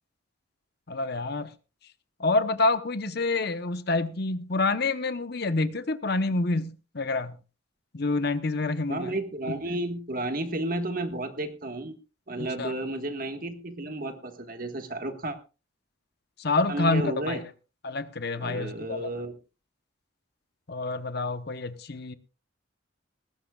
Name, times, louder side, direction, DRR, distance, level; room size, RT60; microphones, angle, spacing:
voice 1, 0.9-1.5 2.2-7.4 7.9-9.1 12.6-12.7 16.4-17.5 17.8-19.1 20.7-22.2, left 3 dB, 55° left, 1.0 m, -27 dB
voice 2, 8.9-11.9 12.3-15.4 16.7-17.4 18.4-19.4, right 1 dB, 45° right, 1.6 m, -32 dB
19.5 x 15.5 x 2.4 m
head